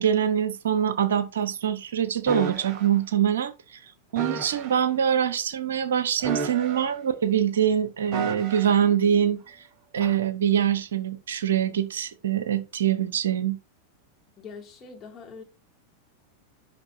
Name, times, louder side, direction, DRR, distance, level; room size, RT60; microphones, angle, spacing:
voice 1, 0.0-3.8 4.1-9.6 9.9-13.6, right 9 dB, 65° right, 0.7 m, -24 dB
sound 1, 2.3-2.9 4.2-4.8 6.2-7.1 8.1-8.9 10.0-10.2, right 4 dB, 30° right, 3.5 m, -33 dB
voice 2, 14.4-15.4, left 5 dB, 25° left, 2.0 m, -43 dB
10.5 x 3.6 x 2.5 m
figure-of-eight pair, 90°, 0 cm